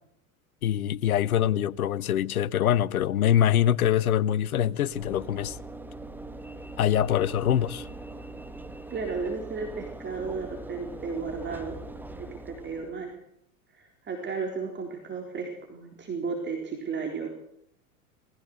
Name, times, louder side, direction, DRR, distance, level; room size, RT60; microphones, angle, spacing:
voice 1, 0.6-5.6 6.8-7.9, left 10 dB, 80° left, 0.9 m, -24 dB
Train / Engine / Alarm, 4.9-13.1, right 2 dB, 5° right, 1.5 m, -42 dB
voice 2, 8.9-11.8 12.2-13.2 13.7-17.3, right 4 dB, 25° right, 4.1 m, -34 dB
21.0 x 16.0 x 8.0 m
hypercardioid pair, 90°, 43 cm